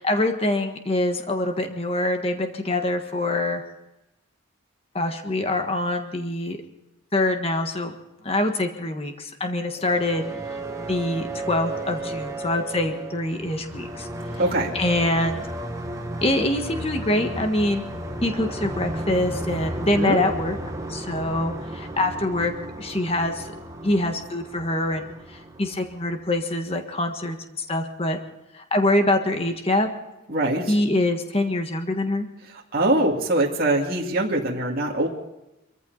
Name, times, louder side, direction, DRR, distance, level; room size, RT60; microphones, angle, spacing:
voice 1, 0.0-3.6 4.9-6.6 7.1-7.9 8.2-10.2 10.9-14.1 14.7-15.4 16.2-17.8 18.2-20.6 20.9-23.5 23.8-27.4 27.7-28.2 28.5-29.9 30.7-32.3, left 1 dB, 30° left, 5 dB, 1.5 m, -24 dB
sound 1, 9.7-26.6, right 1 dB, 15° right, 1.4 m, -34 dB
voice 2, 14.4-14.7 20.0-20.2 30.3-30.7 32.7-35.1, right 1 dB, 45° right, -2 dB, 2.3 m, -22 dB
24.5 x 14.5 x 4.0 m, 0.94 s
head